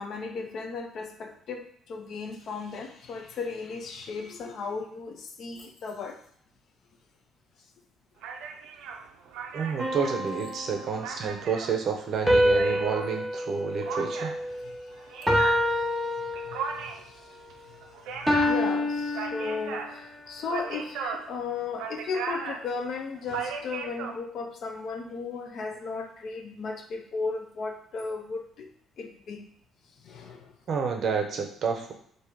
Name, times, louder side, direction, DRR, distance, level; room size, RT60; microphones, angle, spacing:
voice 1, 0.0-6.2 14.6-17.7 18.1-28.7 29.0-29.5 30.0-30.5, left 4 dB, 45° left, 5 dB, 0.6 m, -36 dB
sound 1, 8.2-13.1 13.8-24.2, right 6 dB, 90° right, 0.5 m, -38 dB
voice 2, 9.5-14.4 30.7-31.9, right 6 dB, 45° right, 4 dB, 0.6 m, -29 dB
sound 2, 9.8-11.2 12.3-14.7 15.3-16.9 18.3-19.9, left 1 dB, ahead, 0.8 m, -27 dB
3.6 x 2.7 x 4.6 m, 0.63 s
cardioid pair, 165°, 0 cm